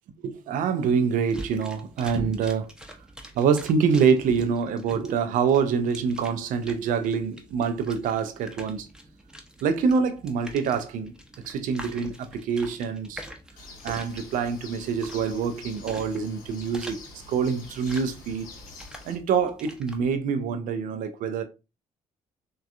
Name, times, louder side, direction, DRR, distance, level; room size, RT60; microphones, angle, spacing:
voice 1, 0.2-2.7 3.3-8.9 9.6-11.1 11.4-13.2 13.8-17.0 17.3-18.5 19.0-21.4, right 6 dB, 55° right, 0.4 m, -25 dB
sound 1, 1.3-20.0, right 1 dB, 5° right, 0.6 m, -46 dB
Bird, 13.6-19.1, left 3 dB, 55° left, 0.7 m, -46 dB
3.3 x 2.2 x 2.3 m
figure-of-eight pair, 40°, 17 cm